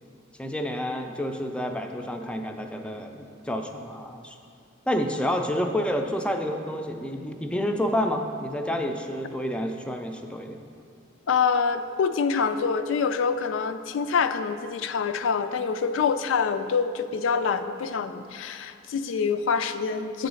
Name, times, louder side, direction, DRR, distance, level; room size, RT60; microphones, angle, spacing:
voice 1, 0.4-4.4 4.9-10.6, equal, 5° left, 4 dB, 0.4 m, -29 dB
voice 2, 11.3-20.3, left 5 dB, 75° left, 9 dB, 0.3 m, -26 dB
8.1 x 3.9 x 6.2 m, 2.3 s
head